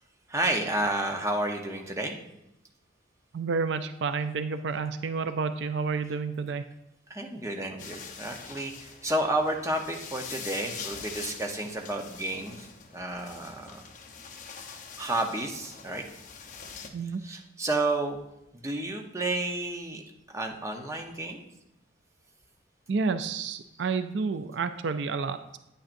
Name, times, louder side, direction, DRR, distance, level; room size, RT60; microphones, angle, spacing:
voice 1, 0.3-2.2 7.1-12.7 12.9-13.8 15.0-16.0 17.2-18.2 18.5-20.0 20.3-21.4, right 1 dB, 15° right, 2 dB, 0.8 m, -31 dB
voice 2, 3.3-6.6 16.9-17.2 22.9-25.6, right 4 dB, 70° right, 10 dB, 0.4 m, -30 dB
sound 1, 7.8-16.9, left 6 dB, 40° left, 0.8 m, -44 dB
9.2 x 8.8 x 2.6 m, 0.87 s
head